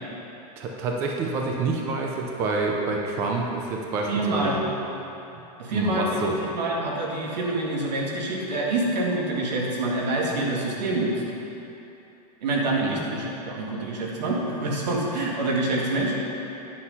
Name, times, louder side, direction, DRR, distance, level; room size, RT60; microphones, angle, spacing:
voice 1, 0.6-4.8 5.3-5.4 5.7-6.4 12.8-13.0, right 3 dB, 10° right, 1 dB, 0.3 m, -28 dB
voice 2, 4.1-4.6 5.6-11.2 12.4-16.2, right 2 dB, 85° right, -2 dB, 2.2 m, -26 dB
9.8 x 6.3 x 5.5 m, 2.9 s
supercardioid pair, 180°, 21 cm